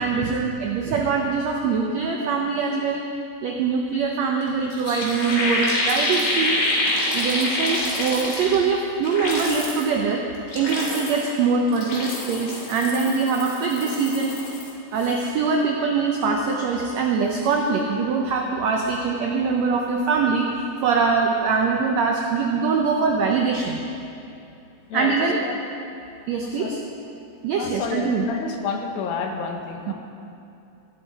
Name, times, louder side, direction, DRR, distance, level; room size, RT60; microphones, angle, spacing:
voice 1, 0.0-3.0 3.4-6.6 7.1-10.2 10.5-14.3 14.9-20.5 20.8-23.8 24.9-25.4 26.3-26.8 27.4-28.3 29.9-30.0, right 5 dB, 85° right, 1 dB, 1.5 m, -23 dB
sound 1, 4.4-4.5 4.7-8.7 9.0-9.9 10.4-11.3 11.7-14.7 15.0-15.3, left 1 dB, 70° left, 3.9 m, -26 dB
voice 2, 24.9-25.6 26.4-26.8 27.6-29.9, left 5 dB, 85° left, 3 dB, 2.8 m, -30 dB
14.5 x 11.5 x 4.0 m, 2.7 s
omnidirectional pair, 4.0 m